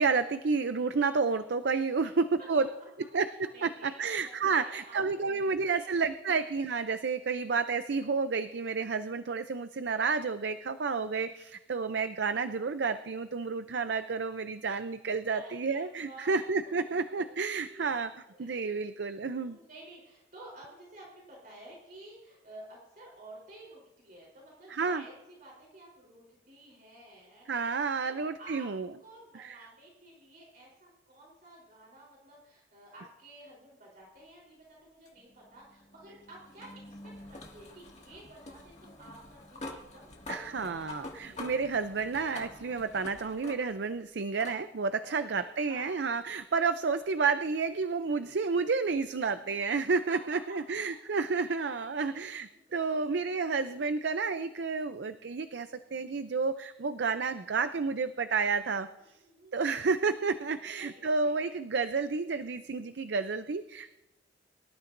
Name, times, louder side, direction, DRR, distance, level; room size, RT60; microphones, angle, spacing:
voice 1, 0.0-2.7 3.1-18.1 18.4-19.6 24.7-25.0 27.5-28.9 29.3-29.6 40.3-58.9 59.5-63.9, right 4 dB, 65° right, 10 dB, 0.5 m, -30 dB
voice 2, 3.3-5.0 5.3-5.9 10.7-10.9 13.4-13.7 15.3-16.7 17.0-17.2 17.5-18.0 18.4-18.7 19.3-27.7 28.0-28.7 29.0-40.9 41.3-41.4 45.0-45.9 50.1-50.2 51.4-51.5 51.9-52.3 52.5-53.2 53.6-53.9 59.1-59.8 60.8-61.5, right 1 dB, 45° right, -3 dB, 3.8 m, -53 dB
sound 1, 35.0-43.9 44.4-44.6 45.9-46.0 48.9-49.0, left 2 dB, 35° left, 2.0 m, -47 dB
24.0 x 13.0 x 2.6 m, 0.98 s
head